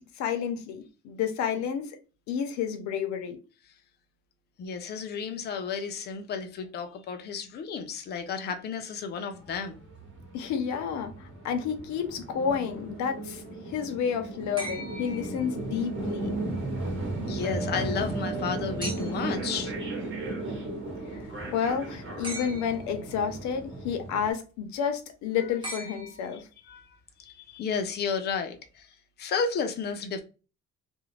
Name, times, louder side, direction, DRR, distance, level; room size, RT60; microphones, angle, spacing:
voice 1, 0.2-2.0 2.3-3.4 10.3-16.3 21.1-26.4, left 7 dB, 75° left, 0.6 m, -30 dB
voice 2, 4.6-9.8 17.1-19.7 26.7-26.8 27.2-28.9 29.2-30.2, left 6 dB, 35° left, 0.4 m, -32 dB
sound 1, 9.3-24.3, right 2 dB, 40° right, 1.0 m, -35 dB
sound 2, 14.6-15.9 18.8-19.4 22.2-23.0 25.6-26.7 28.3-28.4, right 1 dB, 15° right, 0.7 m, -40 dB
2.4 x 2.1 x 3.1 m
cardioid pair, 180°, 29 cm